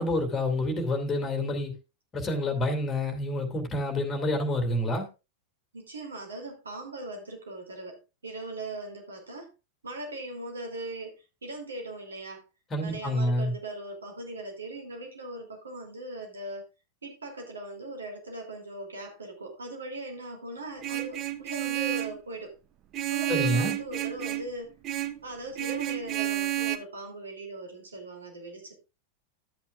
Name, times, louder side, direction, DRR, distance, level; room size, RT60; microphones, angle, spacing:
voice 1, 0.0-1.7 2.1-5.1 12.7-13.5 23.3-23.8, left 1 dB, 20° left, 2.4 m, -28 dB
voice 2, 5.7-9.5 9.8-12.4 12.8-16.6 17.0-22.6 23.1-24.7 25.2-28.8, right 2 dB, 70° right, 2.7 m, -39 dB
Vehicle horn car horn honking, 20.8-22.2 22.9-24.5 24.8-25.2 25.6-26.8, right 14 dB, 35° right, 0.7 m, -30 dB
12.5 x 8.5 x 2.4 m
figure-of-eight pair, 90°, 0 cm